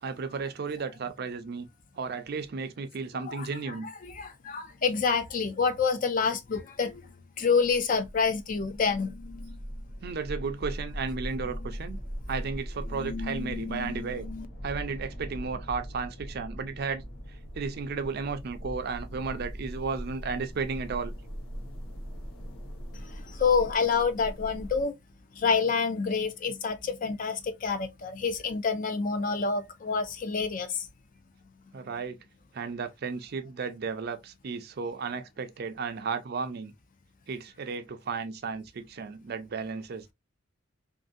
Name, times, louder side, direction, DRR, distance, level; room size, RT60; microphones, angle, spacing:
voice 1, 0.0-1.7 2.0-3.9 10.0-12.0 12.3-14.3 14.6-17.0 17.5-21.1 31.7-32.2 32.5-36.7 37.3-40.1, right 5 dB, 50° right, 0.4 m, -34 dB
voice 2, 4.0-7.0 7.4-9.6 12.9-14.5 23.0-24.9 25.4-30.9, left 5 dB, 40° left, 0.4 m, -28 dB
sound 1, 7.6-24.8, equal, 90° left, 1.1 m, -40 dB
2.6 x 2.5 x 2.4 m
head